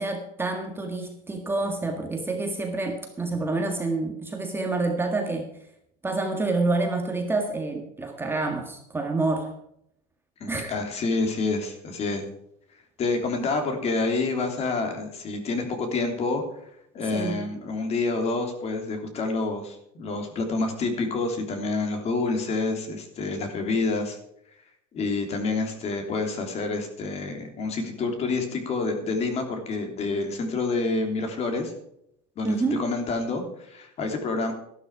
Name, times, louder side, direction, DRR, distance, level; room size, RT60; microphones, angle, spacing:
voice 1, 0.0-5.5 6.0-9.5 10.5-10.7 17.1-17.4 32.4-32.8, right 3 dB, 10° right, 3 dB, 1.7 m, -28 dB
voice 2, 10.4-12.2 13.0-16.4 16.9-24.2 24.9-31.7 32.4-34.5, left 3 dB, 35° left, 5 dB, 3.2 m, -28 dB
13.5 x 12.0 x 4.8 m, 0.72 s
cardioid pair, 145°, 18 cm